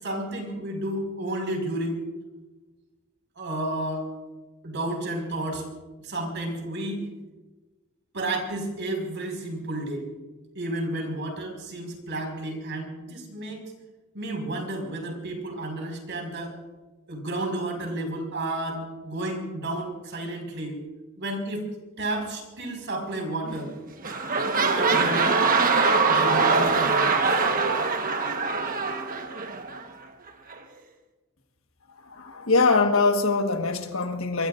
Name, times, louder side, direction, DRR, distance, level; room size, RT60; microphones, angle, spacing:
voice 1, 0.0-2.0 3.4-4.1 4.6-5.7 6.0-7.1 8.1-10.1 10.5-13.6 14.1-16.5 17.1-20.8 21.2-21.7 22.0-23.7 24.6-25.4 26.0-27.5, right 1 dB, 55° right, 5.5 m, -31 dB
sound 1, 23.5-23.7 24.0-29.8 30.5-30.6, right 4 dB, 40° right, 1.3 m, -23 dB
voice 2, 32.0-34.5, left 3 dB, 70° left, 1.5 m, -23 dB
24.0 x 23.0 x 2.6 m
head